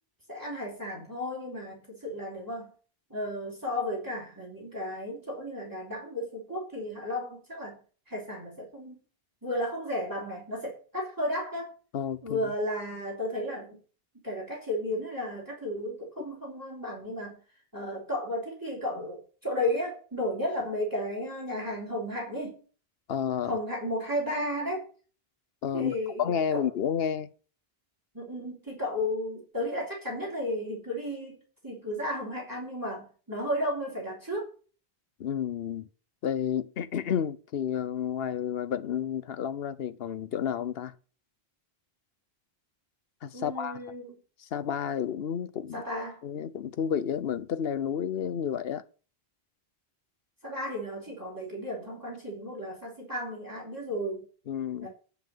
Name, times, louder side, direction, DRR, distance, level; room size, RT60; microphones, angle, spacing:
voice 1, 0.3-2.7 3.1-7.8 8.1-9.0 9.4-11.7 12.2-13.8 14.2-17.4 17.7-22.6 23.4-24.8 25.7-26.7 28.1-34.5 43.3-44.1 45.7-46.2 50.4-54.2 54.8-54.9, left 1 dB, 20° right, 3.4 m, -34 dB
voice 2, 11.9-12.5 23.1-23.6 25.6-27.3 35.2-35.9 36.2-40.9 43.2-43.8 44.4-45.8 46.2-48.8 54.5-54.9, left 8 dB, 70° left, 0.9 m, -31 dB
9.5 x 5.7 x 7.2 m
omnidirectional pair, 1.0 m